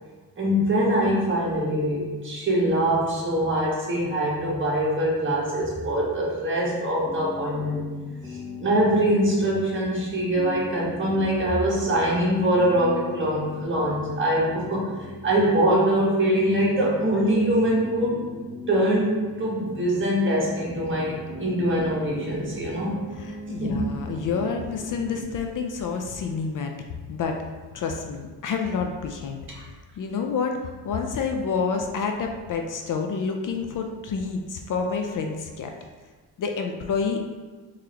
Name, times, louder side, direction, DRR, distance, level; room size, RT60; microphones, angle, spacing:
voice 1, 0.4-7.8 8.2-15.0 15.2-18.2 18.7-23.0 23.6-23.9 29.5-29.6, right 1 dB, 30° right, -5 dB, 1.4 m, -23 dB
sound 1, 7.0-25.2, equal, 5° right, 0.8 m, -40 dB
voice 2, 23.2-26.7 27.1-27.4 27.7-29.4 30.0-35.7 36.4-37.2, left 5 dB, 55° left, 3 dB, 0.5 m, -28 dB
3.7 x 3.2 x 2.8 m, 1.4 s
cardioid pair, 80°, 38 cm